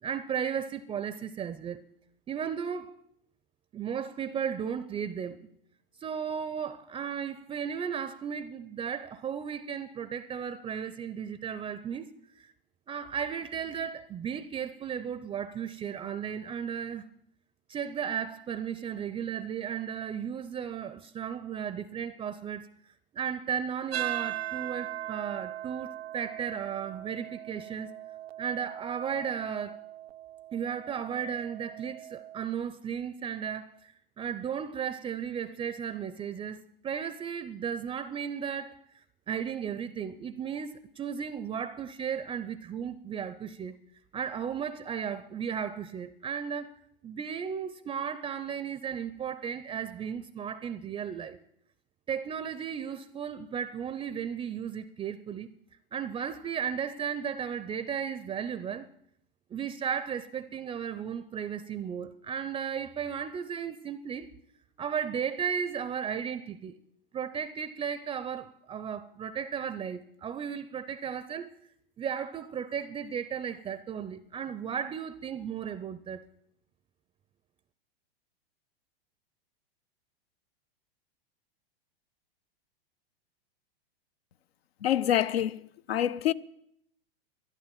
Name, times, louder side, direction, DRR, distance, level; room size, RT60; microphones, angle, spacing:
voice 1, 0.0-1.8 2.3-3.0 3.7-5.4 6.0-12.1 12.4-12.5 12.9-17.1 17.7-22.7 23.1-27.9 28.4-29.8 30.5-38.8 39.3-43.8 44.1-46.7 47.0-51.4 52.1-55.5 55.9-58.9 59.5-64.3 64.8-66.7 67.1-71.5 72.0-76.2, right 7 dB, 15° right, 0.5 m, -35 dB
sound 1, 23.9-32.4, right 13 dB, 90° right, 0.5 m, -39 dB
voice 2, 84.8-85.6 85.9-86.3, left 11 dB, 80° left, 0.6 m, -26 dB
12.5 x 11.0 x 7.3 m
hypercardioid pair, 110°, 30 cm